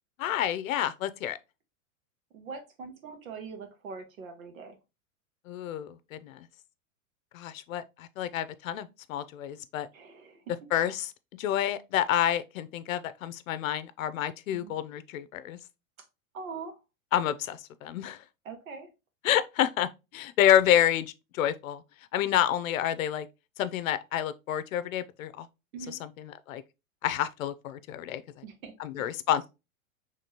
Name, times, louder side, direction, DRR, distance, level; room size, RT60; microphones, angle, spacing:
voice 1, 0.2-1.4 5.5-6.5 7.3-9.9 10.7-11.1 11.4-15.6 17.1-18.2 19.2-21.8 22.1-23.3 23.6-25.5 25.9-26.6 27.0-28.4 28.8-29.5, left 11 dB, 80° left, 0.7 m, -29 dB
voice 2, 2.3-4.8 9.9-10.4 14.5-14.7 16.3-16.8 18.4-18.9 25.7-26.0 28.4-29.0, right 5 dB, 85° right, 1.5 m, -42 dB
5.1 x 3.4 x 2.8 m
supercardioid pair, 155°, 40 cm